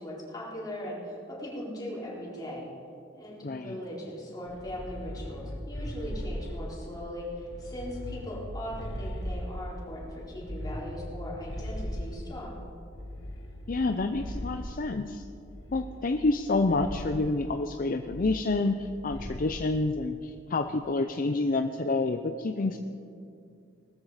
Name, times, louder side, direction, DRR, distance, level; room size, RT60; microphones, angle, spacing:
voice 1, 0.0-2.7 3.1-12.6, equal, 20° left, -5 dB, 4.3 m, -39 dB
voice 2, 3.4-3.8 13.7-15.2 15.7-22.8, left 3 dB, 45° left, 7 dB, 0.6 m, -28 dB
sound 1, 4.5-6.9 7.4-9.8 10.3-12.5 12.9-14.8 15.5-16.4 16.7-17.2 18.1-18.8 19.1-19.5, equal, 75° left, 1.8 m, -38 dB
19.5 x 13.5 x 5.0 m, 2.5 s
head